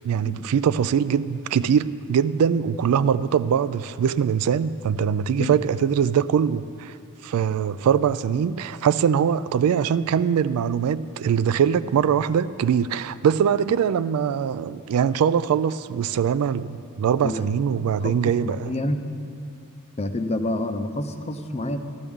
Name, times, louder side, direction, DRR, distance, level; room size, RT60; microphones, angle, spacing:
voice 1, 0.0-7.0 7.2-18.8, right 7 dB, 75° right, 0.3 m, -22 dB
voice 2, 18.4-19.0 20.0-21.8, left 1 dB, 30° left, 0.6 m, -28 dB
14.0 x 12.0 x 3.6 m
head